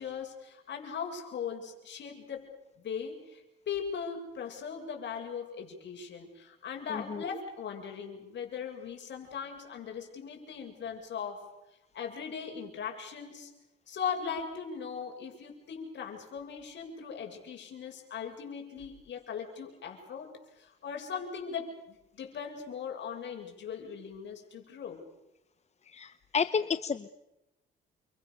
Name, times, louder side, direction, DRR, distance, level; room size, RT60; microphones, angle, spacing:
voice 1, 0.0-2.5 2.8-11.5 11.9-13.5 13.9-20.3 20.6-25.0, left 6 dB, 65° left, 3 dB, 7.5 m, -39 dB
voice 2, 6.9-7.3 25.9-27.1, left 6 dB, 35° left, 13 dB, 1.0 m, -31 dB
29.5 x 25.0 x 6.9 m, 0.92 s
cardioid pair, 90°, 20 cm